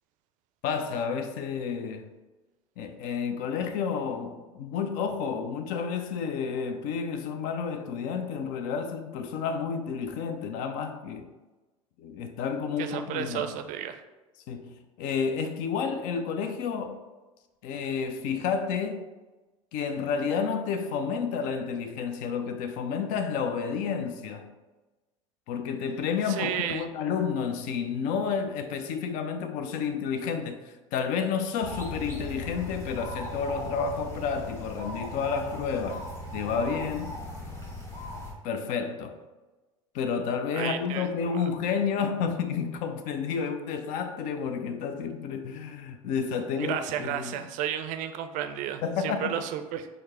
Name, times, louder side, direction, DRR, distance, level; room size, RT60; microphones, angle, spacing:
voice 1, 0.6-2.1 2.8-11.3 12.0-13.5 14.5-17.0 17.6-19.1 19.7-24.5 25.5-36.0 36.3-37.1 38.4-39.2 39.9-47.4 48.8-49.3, left 6 dB, 55° left, 0.5 m, -30 dB
voice 2, 12.8-14.0 26.3-26.9 40.5-41.4 46.6-49.9, right 10 dB, 50° right, 0.4 m, -32 dB
sound 1, 31.6-38.3, left 1 dB, 15° left, 1.2 m, -38 dB
4.7 x 2.1 x 4.1 m
figure-of-eight pair, 65°, 17 cm